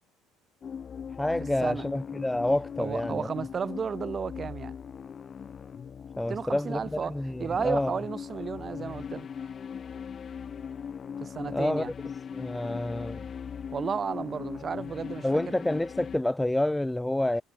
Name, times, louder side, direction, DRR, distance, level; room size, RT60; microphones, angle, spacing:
sound 1, 0.6-16.2, left 7 dB, 30° left, 5.2 m, -39 dB
voice 1, 1.2-3.3 6.2-8.0 11.5-11.8 12.3-13.3 15.2-17.4, left 1 dB, 5° left, 0.6 m, -28 dB
voice 2, 2.8-4.7 6.3-9.3 11.2-11.9 13.7-15.5, right 6 dB, 25° right, 3.0 m, -33 dB
cardioid pair, 160°, 0 cm